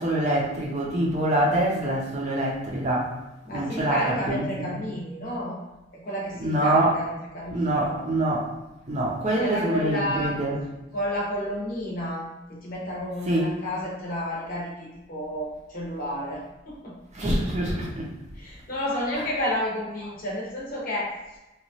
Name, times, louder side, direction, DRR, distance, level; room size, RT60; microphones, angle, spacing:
voice 1, 0.0-3.1 3.5-4.8 6.4-6.9 7.5-8.5 8.9-10.6 13.3-13.5 17.1-18.1, right 1 dB, 35° right, -3 dB, 0.5 m, -25 dB
voice 2, 3.4-5.6 5.9-8.0 9.2-10.4 10.9-16.9 18.3-21.1, equal, 45° left, -4 dB, 0.8 m, -31 dB
3.0 x 2.2 x 2.7 m, 1.0 s
head